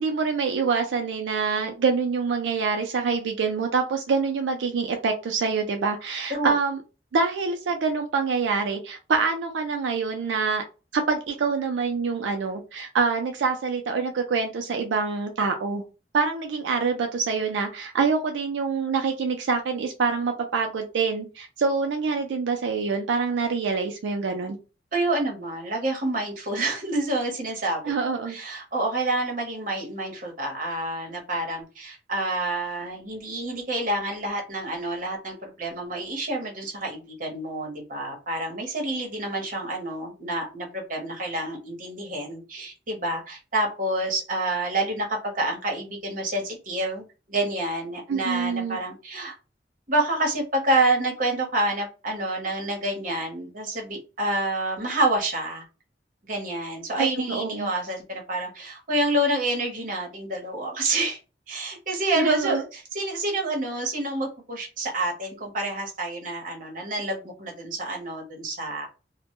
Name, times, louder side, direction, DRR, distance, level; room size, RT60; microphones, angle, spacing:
voice 1, 0.0-6.8 7.1-10.6 10.9-15.8 16.1-24.6 27.8-28.4 48.1-48.8 57.0-57.7 62.2-62.6, right 5 dB, 85° right, 4 dB, 0.4 m, -26 dB
voice 2, 24.9-27.8 28.3-49.3 49.9-55.7 56.3-61.2 61.5-68.9, right 2 dB, 45° right, 1 dB, 0.9 m, -28 dB
2.1 x 2.1 x 2.9 m, 0.31 s
head